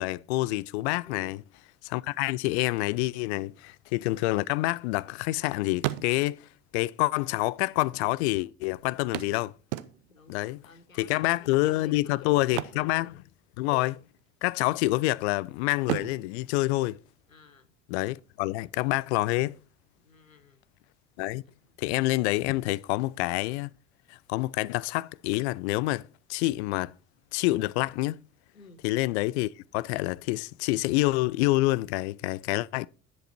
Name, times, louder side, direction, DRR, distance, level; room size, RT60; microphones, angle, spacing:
voice 1, 0.0-1.4 1.8-3.5 3.9-9.5 10.3-10.6 11.0-13.1 13.6-14.0 14.4-17.0 17.9-19.6 21.2-21.4 21.8-23.7 24.1-26.9 27.3-28.2 28.8-32.9, left 19 dB, 55° left, 0.5 m, -27 dB
voice 2, 1.0-1.4 3.3-3.6 10.1-13.2 17.3-17.7 20.0-20.6 21.4-21.8 28.5-28.8, left 3 dB, 85° left, 0.9 m, -53 dB
sound 1, 4.4-5.4 5.7-6.6 7.5-7.6 7.8-7.9 9.1-10.3 12.4-13.7 13.9-14.2 14.7-15.3 15.8-17.6 19.5-19.6 20.1-20.2, right 16 dB, 60° right, 0.7 m, -36 dB
10.5 x 7.5 x 4.3 m
figure-of-eight pair, 60°, 39 cm